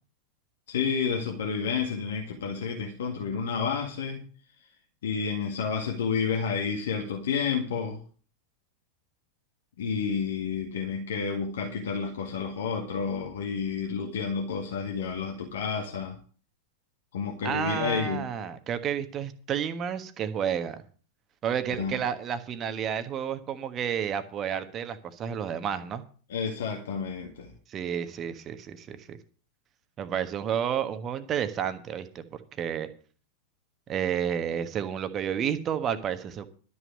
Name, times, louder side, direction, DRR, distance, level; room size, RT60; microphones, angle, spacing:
voice 1, 0.7-4.2 5.0-8.0 9.8-16.2 17.1-18.2 21.8-22.0 26.3-27.5, left 6 dB, 60° left, 1 dB, 1.9 m, -30 dB
voice 2, 17.4-20.8 21.4-26.0 27.7-29.2 30.0-32.2 32.6-32.9 33.9-36.5, right 8 dB, 30° right, 11 dB, 1.3 m, -31 dB
12.5 x 6.2 x 8.1 m, 0.41 s
figure-of-eight pair, 90°, 0 cm